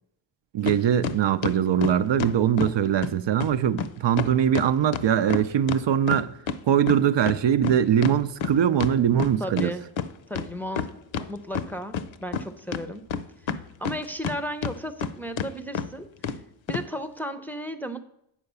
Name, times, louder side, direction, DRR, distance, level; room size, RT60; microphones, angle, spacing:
voice 1, 0.5-6.3 6.7-9.7, right 9 dB, 65° right, 0.5 m, -22 dB
sound 1, 0.7-0.8 1.0-2.7 3.0-3.1 3.4-3.5 3.8-3.9 4.2-6.6 6.9-9.7 10.0-10.1 10.3-11.3 11.5-12.4 12.7-14.3 14.6-15.1 15.4-15.5 15.7-15.9 16.2-16.4 16.7-16.8, left 6 dB, 75° left, 0.6 m, -29 dB
voice 2, 9.4-9.8 10.3-10.9 11.3-12.0 12.2-13.0 13.8-16.3 16.7-18.0, equal, 5° left, 0.5 m, -34 dB
9.0 x 4.8 x 6.7 m
wide cardioid pair, 130°, 47 cm